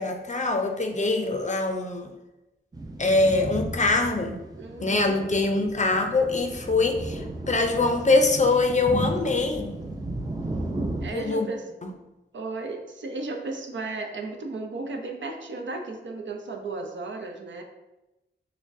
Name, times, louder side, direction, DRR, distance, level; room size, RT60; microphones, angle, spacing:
voice 1, 0.0-2.1 3.0-4.4 4.8-9.8 11.1-11.5 11.8-11.9, left 3 dB, 40° left, 5 dB, 0.5 m, -23 dB
sound 1, 2.7-11.1, right 2 dB, 20° right, 0.5 m, -34 dB
voice 2, 4.5-5.1 11.0-11.6 12.3-17.6, right 3 dB, 70° right, 3 dB, 0.6 m, -34 dB
6.1 x 2.2 x 2.6 m, 0.99 s
wide cardioid pair, 60°, 20 cm